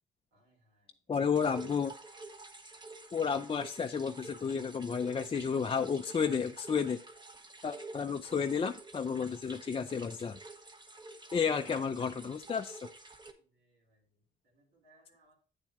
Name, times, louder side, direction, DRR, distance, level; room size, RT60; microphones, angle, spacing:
voice 1, 0.3-1.0 7.7-7.8 13.4-15.4, right 2 dB, 80° right, 4.7 m, -68 dB
voice 2, 1.1-1.9 3.1-7.0 7.6-10.4 11.3-12.8, left 6 dB, 30° left, 0.5 m, -32 dB
sound 1, 1.4-13.3, right 2 dB, 20° right, 1.1 m, -50 dB
8.8 x 7.2 x 3.1 m
cardioid pair, 90°, 20 cm